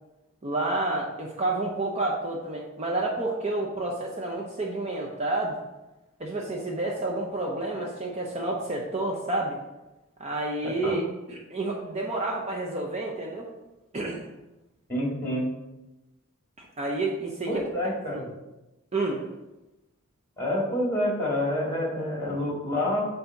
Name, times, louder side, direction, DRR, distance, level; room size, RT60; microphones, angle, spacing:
voice 1, 0.4-5.6 6.2-9.6 10.2-11.0 11.3-13.5 13.9-14.2 16.6-17.6 18.1-18.3 18.9-19.2, right 2 dB, 30° right, -1 dB, 0.7 m, -29 dB
voice 2, 14.9-15.5 17.5-18.3 20.4-23.1, left 1 dB, 10° left, -4 dB, 2.0 m, -27 dB
8.1 x 2.7 x 5.8 m, 1.0 s
head